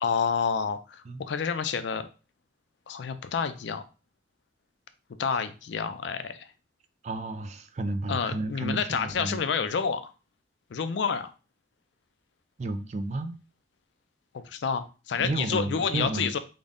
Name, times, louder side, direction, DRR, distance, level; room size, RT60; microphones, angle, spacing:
voice 1, 0.0-2.1 2.9-3.8 5.2-6.5 8.1-10.1 10.7-11.3 14.3-16.4, left 6 dB, 75° left, 10 dB, 0.4 m, -29 dB
voice 2, 7.0-9.4 12.6-13.4 15.2-16.3, right 2 dB, 40° right, 9 dB, 0.3 m, -32 dB
3.7 x 2.1 x 3.5 m, 0.32 s
head